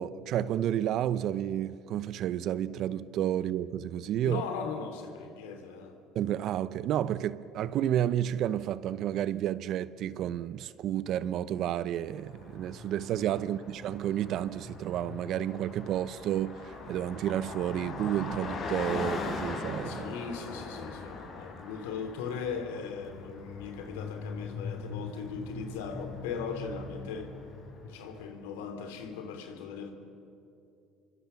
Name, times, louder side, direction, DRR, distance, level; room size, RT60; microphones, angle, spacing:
voice 1, 0.0-4.4 6.1-20.1, right 11 dB, 60° right, 0.8 m, -31 dB
voice 2, 4.2-6.0 13.4-13.6 19.8-27.3 27.8-29.9, left 6 dB, 85° left, 3.0 m, -39 dB
Car passing by, 12.2-28.2, left 3 dB, 55° left, 6.9 m, -40 dB
27.5 x 24.0 x 7.1 m
supercardioid pair, 85°, 0 cm